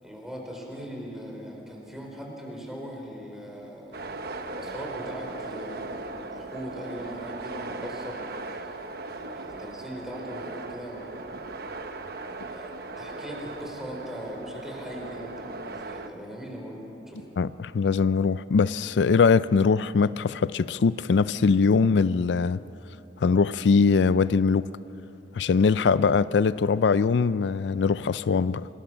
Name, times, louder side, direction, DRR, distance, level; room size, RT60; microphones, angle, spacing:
voice 1, 0.0-4.1 4.4-8.8 9.1-11.5 12.5-17.3, equal, 5° right, -1 dB, 4.4 m, -40 dB
sound 1, 3.9-16.1, right 3 dB, 60° right, 1.1 m, -38 dB
voice 2, 17.4-22.6 23.2-24.7 25.3-28.7, left 5 dB, 80° left, 16 dB, 0.4 m, -22 dB
26.5 x 20.5 x 6.2 m, 2.9 s
head